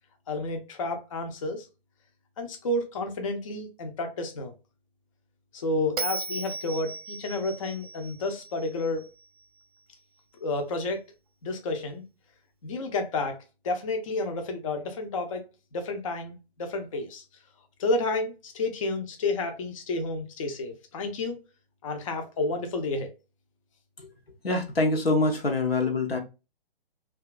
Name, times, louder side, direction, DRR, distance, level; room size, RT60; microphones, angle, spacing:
voice 1, 0.3-1.7 2.4-4.5 5.5-9.1 10.4-11.0 11.4-12.0 12.6-15.4 15.7-17.2 17.8-21.4 21.8-23.1, left 2 dB, 35° left, 0.4 m, -30 dB
Bell, 6.0-9.2, right 3 dB, 40° right, 0.4 m, -36 dB
voice 2, 24.4-26.2, left 2 dB, 90° left, 0.8 m, -25 dB
2.7 x 2.3 x 2.4 m
figure-of-eight pair, 135°, 29 cm